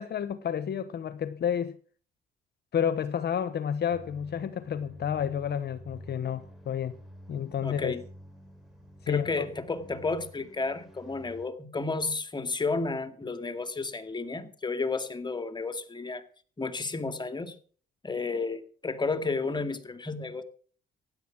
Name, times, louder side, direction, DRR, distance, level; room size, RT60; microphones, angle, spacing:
voice 1, 0.0-1.8 2.7-7.0 7.3-7.9 9.0-9.4, left 8 dB, 55° left, 1.0 m, -30 dB
sound 1, 3.9-11.5, equal, ahead, 5.1 m, -50 dB
voice 2, 7.6-8.0 9.1-16.2 16.6-17.6 18.0-20.4, left 3 dB, 20° left, 2.3 m, -32 dB
16.0 x 10.5 x 6.1 m
cardioid pair, 90°, 20 cm